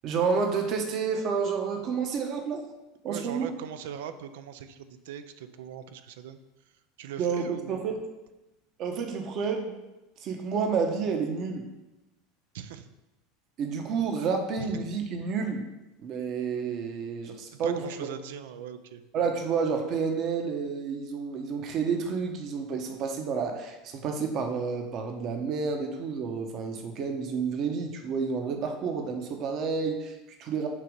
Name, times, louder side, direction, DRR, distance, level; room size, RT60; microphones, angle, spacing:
voice 1, 0.0-2.6 3.0-3.5 7.2-8.0 8.8-9.7 10.2-11.6 13.6-15.6 16.0-17.8 19.1-30.7, right 5 dB, 50° right, 4 dB, 1.0 m, -30 dB
voice 2, 3.1-6.4 7.0-7.9 12.5-12.9 14.6-14.8 17.5-19.0 29.2-29.3, right 8 dB, 75° right, 10 dB, 0.4 m, -40 dB
6.6 x 3.0 x 5.1 m, 1.0 s
hypercardioid pair, 95°, 0 cm